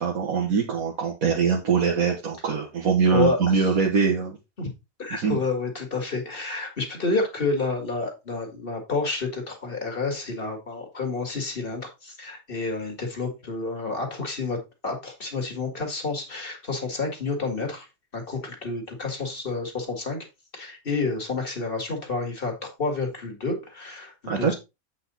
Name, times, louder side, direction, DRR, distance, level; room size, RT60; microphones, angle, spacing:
voice 1, 0.0-4.4 5.1-5.4 24.3-24.5, right 6 dB, 75° right, -1 dB, 1.8 m, -23 dB
voice 2, 3.1-3.7 4.6-4.7 5.0-14.6 14.8-17.9 18.1-20.2 20.5-24.6, left 3 dB, 40° left, 3 dB, 2.3 m, -29 dB
8.2 x 5.3 x 4.1 m, 0.24 s
omnidirectional pair, 1.5 m